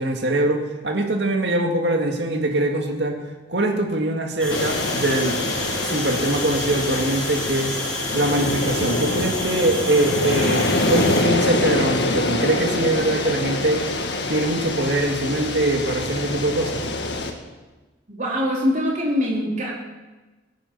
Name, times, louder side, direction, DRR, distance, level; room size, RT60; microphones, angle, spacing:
voice 1, 0.0-3.2 3.5-5.4 5.8-7.8 8.1-13.9 14.3-16.9, right 1 dB, 65° right, 3 dB, 2.2 m, -22 dB
sound 1, 4.4-11.2, left 1 dB, 5° left, 3.4 m, -30 dB
sound 2, 4.5-17.3, left 2 dB, 65° left, 1.8 m, -25 dB
voice 2, 18.1-19.7, left 1 dB, 40° right, -2 dB, 4.0 m, -23 dB
16.5 x 10.0 x 7.1 m, 1.2 s
head